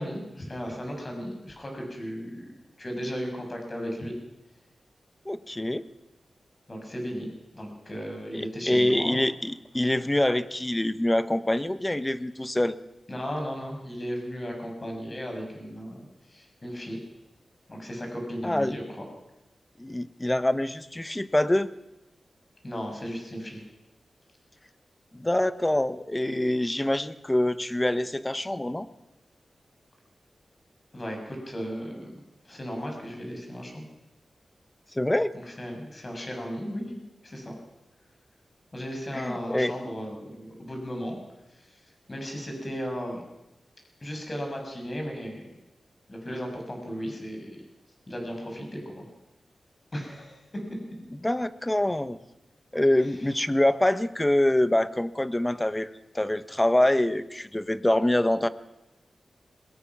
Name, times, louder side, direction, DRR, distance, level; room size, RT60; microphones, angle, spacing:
voice 1, 0.0-2.4 2.8-4.1 6.7-7.3 7.5-9.2 13.1-16.0 16.3-17.0 17.7-19.0 22.6-23.6 30.9-32.1 32.4-33.8 35.5-37.5 38.7-41.2 41.5-41.8 42.1-43.2 44.0-45.6 46.1-47.6 48.1-49.1 49.9-50.4 53.0-53.2, equal, 30° left, 2 dB, 6.5 m, -35 dB
voice 2, 5.2-5.8 8.3-12.8 18.4-18.8 19.8-21.7 25.1-28.9 34.9-35.3 39.1-39.7 51.2-52.2 52.7-58.5, left 1 dB, 15° left, 13 dB, 1.0 m, -25 dB
22.5 x 21.0 x 6.1 m, 0.95 s
wide cardioid pair, 85°, 0 cm